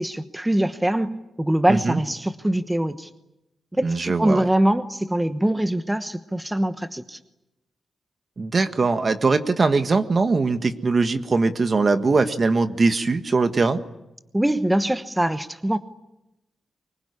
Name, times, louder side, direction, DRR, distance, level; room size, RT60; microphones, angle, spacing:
voice 1, 0.0-3.1 3.7-7.2 14.3-15.8, right 1 dB, 10° right, 9 dB, 1.1 m, -23 dB
voice 2, 1.7-2.0 3.8-4.5 8.4-13.8, right 3 dB, 40° right, 8 dB, 1.6 m, -21 dB
24.0 x 21.5 x 9.9 m, 0.93 s
cardioid pair, 90°, 0 cm